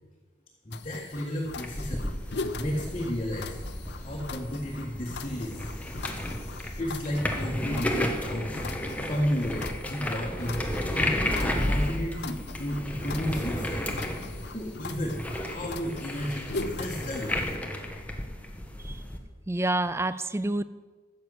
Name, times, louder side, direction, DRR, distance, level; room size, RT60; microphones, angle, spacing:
sound 1, 0.7-17.6, left 3 dB, 65° left, 0.7 m, -41 dB
voice 1, 0.7-3.6 4.0-5.7 6.8-8.6 9.0-10.6 11.0-13.9 14.2-14.3 14.5-17.5, equal, 30° left, -3 dB, 1.8 m, -33 dB
sound 2, 1.6-19.2, left 1 dB, 10° left, 1.2 m, -33 dB
voice 2, 19.5-20.6, right 2 dB, 15° right, 14 dB, 0.4 m, -28 dB
14.0 x 7.1 x 8.0 m, 1.4 s
head